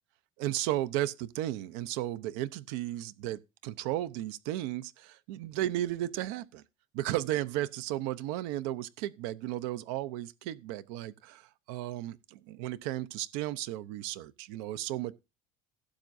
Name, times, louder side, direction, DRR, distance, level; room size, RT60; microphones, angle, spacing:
voice 1, 0.4-6.6 6.9-15.1, right 14 dB, 75° right, 0.6 m, -34 dB
16.5 x 7.3 x 2.6 m
cardioid pair, 180°, 14 cm